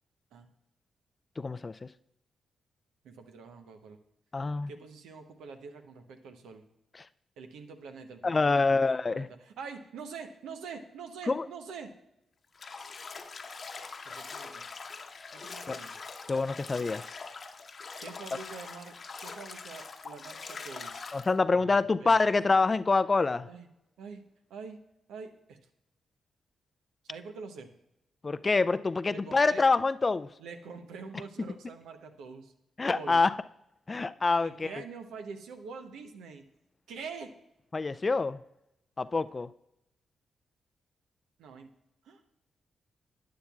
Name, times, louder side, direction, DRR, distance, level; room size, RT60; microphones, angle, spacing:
voice 1, 1.4-1.7 4.3-4.7 8.2-9.3 11.3-11.5 15.7-15.8 16.3-17.0 21.1-23.5 28.2-30.3 32.8-33.3 33.9-34.7 37.7-38.4 39.0-39.5, left 3 dB, 35° left, 15 dB, 0.4 m, -26 dB
voice 2, 3.0-4.0 4.7-6.6 7.4-8.8 9.1-11.9 14.0-14.6 15.3-15.9 18.0-21.1 21.5-22.2 23.5-23.7 24.0-24.2 24.5-24.8 25.1-25.6 27.0-27.7 29.1-29.6 30.4-32.5 32.9-33.2 34.4-36.5 36.9-37.3 41.4-41.7 42.0-42.2, right 5 dB, 80° right, 6 dB, 0.8 m, -45 dB
Bathtub (filling or washing), 12.5-21.3, left 4 dB, 55° left, 0.9 m, -43 dB
11.5 x 9.4 x 2.4 m, 0.86 s
hypercardioid pair, 45°, 0 cm